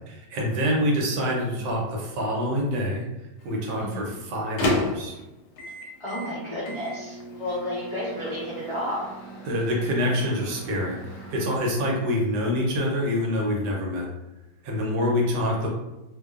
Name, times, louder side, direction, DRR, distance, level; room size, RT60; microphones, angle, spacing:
voice 1, 0.3-3.0 3.4-5.1 9.4-14.1 14.6-15.7, left 1 dB, 75° right, -1 dB, 1.2 m, -26 dB
Microwave oven, 3.4-11.6, left 2 dB, 75° left, 1.1 m, -34 dB
voice 2, 3.8-4.1 6.0-9.1, left 1 dB, 55° left, -10 dB, 0.3 m, -32 dB
2.7 x 2.2 x 2.3 m, 1.0 s
omnidirectional pair, 1.9 m